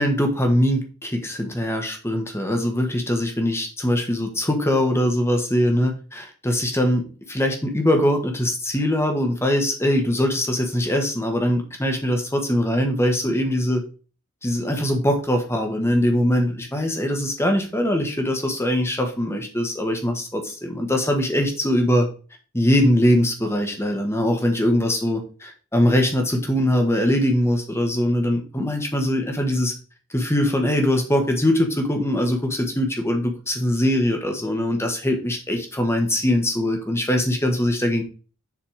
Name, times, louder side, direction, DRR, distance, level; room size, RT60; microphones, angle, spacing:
voice 1, 0.0-13.8 14.4-22.1 22.5-29.7 30.1-38.0, left 1 dB, 10° left, 4 dB, 1.4 m, -22 dB
7.3 x 4.3 x 4.7 m, 0.36 s
head